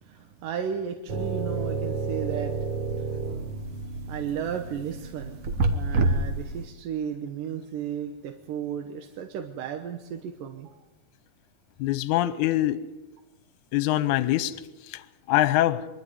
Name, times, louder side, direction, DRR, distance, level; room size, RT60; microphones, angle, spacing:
voice 1, 0.0-2.6 3.0-3.1 4.1-5.4 5.7-10.8, right 8 dB, 80° right, 5 dB, 2.7 m, -34 dB
sound 1, 1.1-6.7, right 3 dB, 55° right, 1.7 m, -29 dB
voice 2, 11.8-12.8 13.7-14.6 14.9-15.9, left 14 dB, 75° left, 14 dB, 2.1 m, -24 dB
24.0 x 12.0 x 9.6 m, 1.1 s
omnidirectional pair, 3.8 m